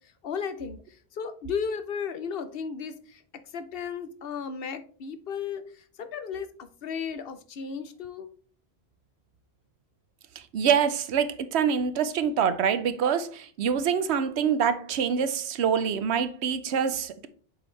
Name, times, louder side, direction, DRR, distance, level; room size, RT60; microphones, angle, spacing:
voice 1, 0.2-0.8 1.2-3.2 3.5-5.6 6.0-8.3, left 6 dB, 65° left, 0.9 m, -34 dB
voice 2, 10.4-17.3, right 7 dB, 85° right, 0.9 m, -25 dB
7.0 x 5.1 x 3.2 m
omnidirectional pair, 1.1 m